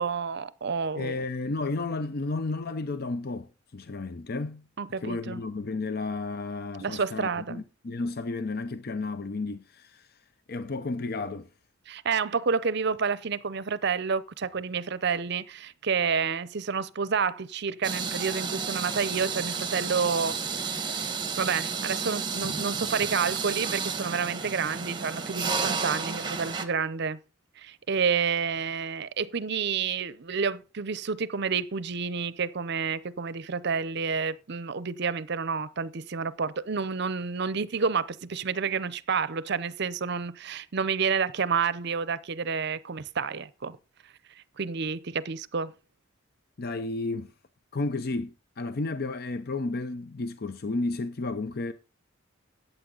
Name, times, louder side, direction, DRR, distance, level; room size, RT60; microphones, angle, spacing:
voice 1, 0.0-1.2 4.8-5.4 6.8-7.6 11.9-20.4 20.7-27.2 27.6-43.8 44.6-45.7, right 5 dB, 55° right, 0.6 m, -29 dB
voice 2, 1.0-4.7 5.0-11.5 46.6-47.3 47.7-51.7, left 3 dB, 50° left, 0.6 m, -32 dB
sound 1, 17.8-26.7, right 5 dB, 20° right, 1.4 m, -31 dB
14.0 x 9.0 x 3.9 m
head